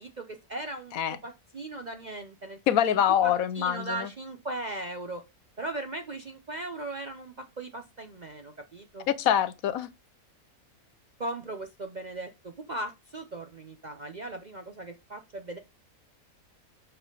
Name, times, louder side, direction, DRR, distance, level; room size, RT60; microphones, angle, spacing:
voice 1, 0.0-2.8 3.2-5.2 5.6-9.1 11.2-15.6, right 2 dB, 45° right, 0.6 m, -38 dB
voice 2, 2.7-3.9 9.1-9.9, left 10 dB, 70° left, 1.1 m, -24 dB
7.1 x 4.5 x 3.8 m
omnidirectional pair, 1.6 m